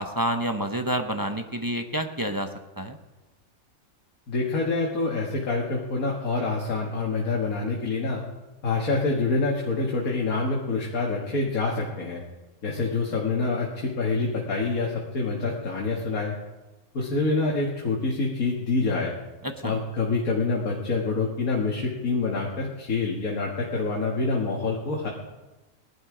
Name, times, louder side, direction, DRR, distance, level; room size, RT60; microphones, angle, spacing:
voice 1, 0.0-2.5 2.8-3.0 19.4-19.7, right 1 dB, 20° right, 5 dB, 0.6 m, -28 dB
voice 2, 4.3-8.2 8.6-12.2 12.6-16.4 16.9-19.2 19.6-25.1, left 3 dB, 70° left, -2 dB, 2.2 m, -26 dB
19.0 x 12.0 x 5.0 m, 1.1 s
omnidirectional pair, 1.5 m